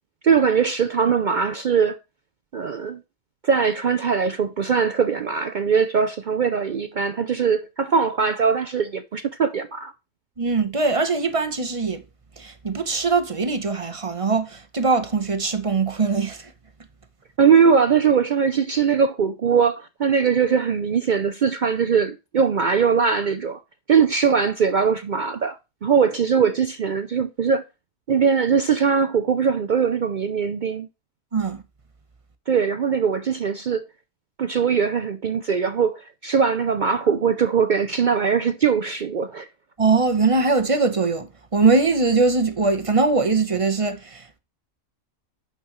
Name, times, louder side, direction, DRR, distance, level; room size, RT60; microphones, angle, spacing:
voice 1, 0.2-2.0 2.5-3.0 3.4-9.9 17.4-23.6 23.9-27.6 28.1-30.9 32.5-33.8 34.4-39.5, right 6 dB, 75° right, 0.4 m, -21 dB
voice 2, 10.4-12.0 12.4-16.5 31.3-31.6 39.8-44.4, right 4 dB, 25° right, 0.9 m, -21 dB
8.6 x 5.9 x 3.0 m
omnidirectional pair, 1.5 m